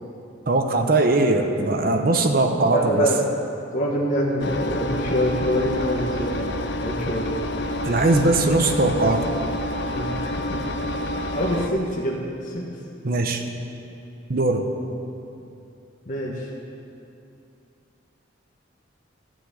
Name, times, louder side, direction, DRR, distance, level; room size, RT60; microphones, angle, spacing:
voice 1, 0.5-3.1 7.8-9.3 13.0-13.4 14.3-14.6, right 2 dB, 50° right, 5 dB, 0.8 m, -20 dB
voice 2, 2.7-3.2 3.7-6.5 6.8-7.3 9.9-10.6 11.3-12.7 16.0-16.5, equal, 40° left, -3 dB, 1.1 m, -25 dB
Engine, 4.4-11.7, left 1 dB, 60° left, 0.7 m, -28 dB
12.0 x 6.0 x 8.3 m, 2.7 s
head